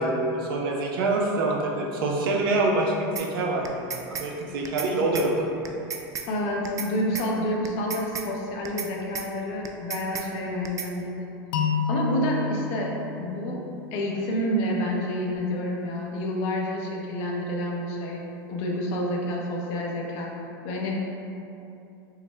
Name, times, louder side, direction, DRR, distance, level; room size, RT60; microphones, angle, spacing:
voice 1, 0.0-5.5, right 2 dB, 75° right, -1 dB, 0.7 m, -26 dB
sound 1, 3.2-3.3 3.6-4.3 4.6-4.9 5.1-5.3 5.6-6.3 6.6-6.9 7.1-7.3 7.6-8.3 8.6-8.9 9.1-9.3 9.6-10.3 10.6-10.9, right 7 dB, 30° right, 0.3 m, -33 dB
voice 2, 6.3-11.4 11.9-12.9 13.2-13.6 13.9-18.2 18.5-20.3 20.6-21.1, equal, 60° left, -1 dB, 0.8 m, -28 dB
sound 2, 11.5-14.4, left 5 dB, 85° left, 0.4 m, -30 dB
5.6 x 2.2 x 3.3 m, 2.8 s
hypercardioid pair, 110°, 12 cm